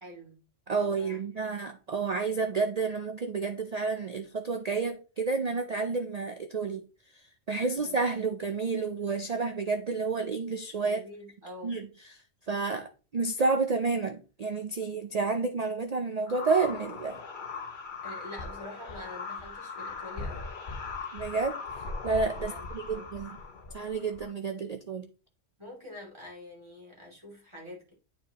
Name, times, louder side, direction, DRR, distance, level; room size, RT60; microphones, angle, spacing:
voice 1, 0.0-0.4 0.7-1.2 7.7-8.0 10.8-11.8 18.0-20.5 22.3-23.3 25.6-27.9, left 1 dB, 25° right, 2.5 m, -46 dB
voice 2, 0.7-6.8 7.5-11.0 11.6-12.2 12.5-17.2 21.1-21.6 22.0-23.4 23.7-25.1, right 4 dB, 55° right, 0.4 m, -30 dB
sound 1, 16.3-24.3, left 4 dB, 45° left, 1.0 m, -39 dB
8.8 x 4.7 x 2.9 m
omnidirectional pair, 1.3 m